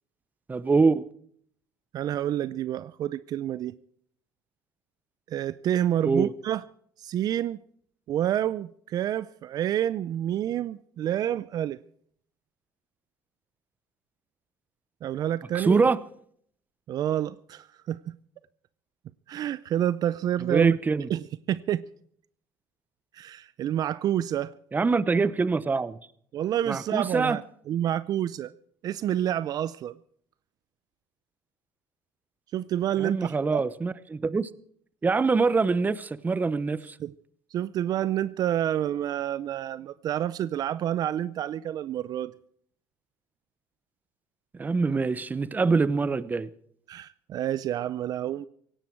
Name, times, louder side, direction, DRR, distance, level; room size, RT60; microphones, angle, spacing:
voice 1, 0.5-1.0 6.0-6.3 15.5-16.0 20.5-21.1 24.7-26.0 26.7-27.4 33.0-34.5 35.0-36.9 44.6-46.5, right 4 dB, 20° right, 0.8 m, -24 dB
voice 2, 1.9-3.7 5.3-6.6 7.0-7.6 8.1-11.8 15.0-15.8 16.9-18.0 19.3-20.8 21.1-21.8 23.1-24.5 26.3-28.5 28.8-30.0 32.5-33.6 37.0-37.1 37.5-42.3 46.9-48.5, right 11 dB, 55° right, 0.5 m, -28 dB
17.5 x 16.5 x 4.6 m
supercardioid pair, 100°, 8 cm